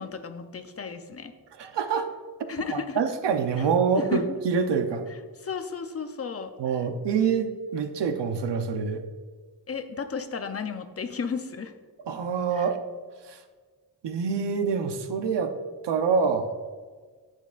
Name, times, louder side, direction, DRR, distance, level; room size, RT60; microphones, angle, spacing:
voice 1, 0.0-1.3 2.5-3.0 3.6-3.7 4.0-4.4 5.1-6.8 9.7-11.7 12.5-12.7, left 5 dB, 35° left, 7 dB, 0.6 m, -34 dB
voice 2, 1.6-2.1 2.7-5.0 6.6-9.0 12.1-12.8 13.3-13.4 14.0-15.5 15.8-16.5, right 6 dB, 80° right, 7 dB, 0.8 m, -26 dB
10.5 x 9.1 x 2.5 m, 1.5 s
wide cardioid pair, 175°, 41 cm